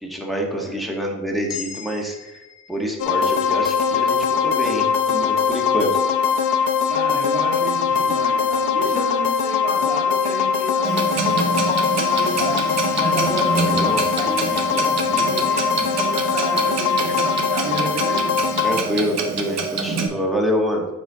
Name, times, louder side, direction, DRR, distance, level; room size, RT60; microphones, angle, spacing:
voice 1, 0.0-2.4 2.7-5.9 13.6-14.0 18.6-20.9, equal, ahead, 0 dB, 1.7 m, -26 dB
voice 2, 0.5-1.0 6.9-18.8, right 1 dB, 30° right, 0 dB, 1.8 m, -32 dB
sound 1, 1.5-5.7, left 7 dB, 60° left, 1.0 m, -41 dB
sound 2, 3.0-18.8, left 6 dB, 90° left, 0.7 m, -21 dB
Clock, 10.8-20.1, right 4 dB, 60° right, 1.1 m, -26 dB
9.0 x 4.4 x 3.7 m, 1.0 s
cardioid pair, 90°, 30 cm